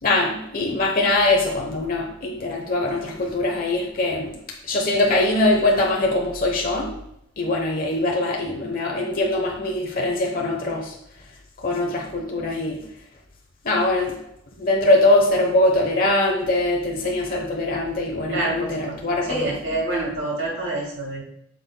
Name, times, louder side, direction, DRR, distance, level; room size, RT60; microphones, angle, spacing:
voice 1, 0.0-4.3 4.6-6.9 7.4-10.9 11.6-12.8 13.6-14.2 14.6-19.5, left 2 dB, 50° left, -1 dB, 1.1 m, -22 dB
voice 2, 18.3-19.0 19.3-21.2, right 2 dB, 85° right, -2 dB, 2.7 m, -27 dB
8.7 x 6.1 x 2.3 m, 0.76 s
head